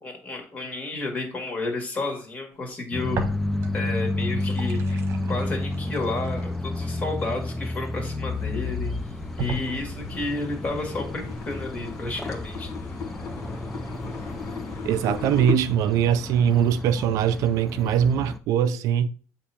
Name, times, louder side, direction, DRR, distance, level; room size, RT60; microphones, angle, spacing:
voice 1, 0.0-3.2 3.7-8.9 9.3-12.7, left 2 dB, 25° left, 1.8 m, -31 dB
sound 1, 2.9-18.4, left 2 dB, 5° left, 0.4 m, -31 dB
sound 2, 3.1-3.9 4.2-8.2 8.8-8.9 9.4-10.3, right 2 dB, 40° right, 1.2 m, -36 dB
sound 3, 8.2-15.5, left 5 dB, 45° left, 1.1 m, -37 dB
voice 2, 14.8-19.1, right 9 dB, 60° right, 0.4 m, -22 dB
8.5 x 2.9 x 5.6 m
cardioid pair, 175°, 7 cm